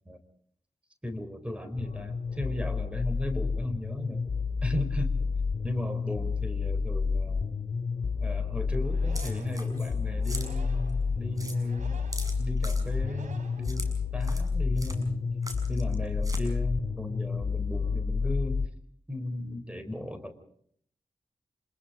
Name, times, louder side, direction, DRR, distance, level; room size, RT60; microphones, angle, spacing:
voice 1, 1.0-4.3 4.6-5.2 5.6-7.5 8.2-12.0 12.4-15.3 15.7-18.7 19.1-20.4, left 1 dB, 10° right, 9 dB, 4.1 m, -35 dB
sound 1, 1.8-18.7, left 5 dB, 70° left, 2.3 m, -30 dB
sound 2, 8.6-14.3, right 4 dB, 80° right, 3.5 m, -51 dB
sound 3, 9.1-9.9 10.2-10.5 10.9-11.0 11.4-11.6 12.1-12.8 13.6-13.9 14.2-14.5 14.8-15.0 15.4-15.9 16.2-16.4, right 1 dB, 25° right, 6.2 m, -41 dB
27.0 x 21.0 x 5.0 m, 0.64 s
cardioid pair, 45°, 13 cm